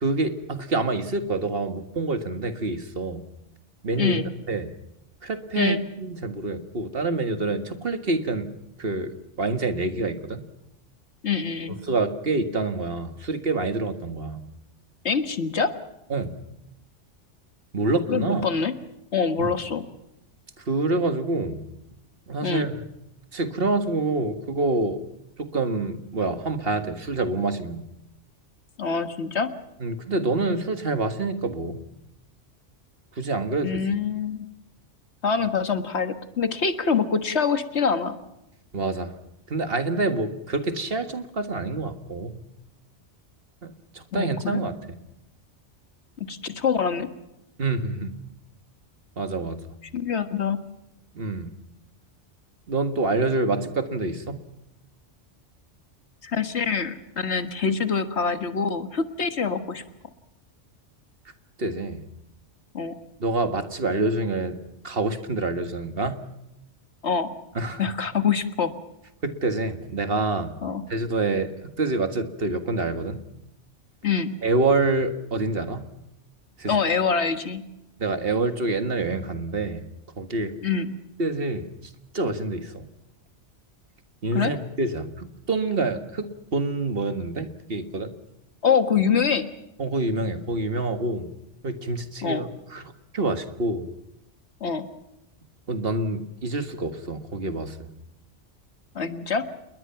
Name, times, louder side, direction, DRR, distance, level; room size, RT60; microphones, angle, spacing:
voice 1, 0.0-3.2 3.8-4.2 4.5-4.7 5.2-8.5 8.8-10.4 11.8-14.4 16.1-16.4 17.7-18.4 19.4-19.6 20.6-21.6 22.3-22.8 23.3-25.0 25.4-27.9 29.8-31.8 33.1-33.8 38.7-39.2 39.5-42.4 43.6-44.8 47.6-48.1 49.2-49.6 51.1-51.5 52.7-54.4 61.6-62.0 63.2-64.6 64.8-66.2 67.5-67.8 69.2-70.6 70.9-73.2 74.4-75.9 76.6-76.8 78.0-79.8 80.2-80.5 81.2-82.9 84.2-88.1 89.8-91.3 91.6-93.9 95.7-97.9, right 3 dB, 50° right, 8 dB, 1.9 m, -27 dB
voice 2, 4.0-4.3 5.6-5.8 11.2-11.8 15.0-15.7 18.1-18.7 19.1-19.8 22.4-22.7 28.8-29.5 33.6-34.5 35.2-38.1 44.1-44.6 46.3-47.1 49.9-50.6 56.2-59.8 62.7-63.0 67.0-67.3 67.8-68.7 70.6-70.8 74.0-74.3 76.7-77.6 80.6-80.9 84.3-84.5 88.6-89.5 92.2-92.5 94.6-94.9 99.0-99.4, left 6 dB, 65° left, 9 dB, 1.8 m, -25 dB
28.5 x 21.5 x 5.8 m, 0.87 s
omnidirectional pair, 1.2 m